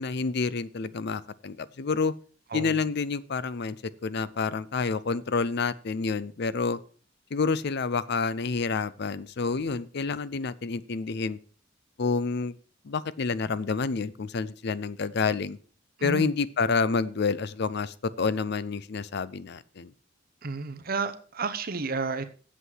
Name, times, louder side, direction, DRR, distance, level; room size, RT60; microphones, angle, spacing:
voice 1, 0.0-2.1 2.5-3.8 4.0-6.8 7.3-11.4 12.0-12.6 12.8-15.6 16.0-19.9, left 4 dB, 60° left, 17 dB, 0.5 m, -28 dB
voice 2, 16.0-16.3 20.4-22.3, right 4 dB, 50° right, 10 dB, 0.9 m, -31 dB
8.3 x 7.6 x 6.2 m, 0.41 s
head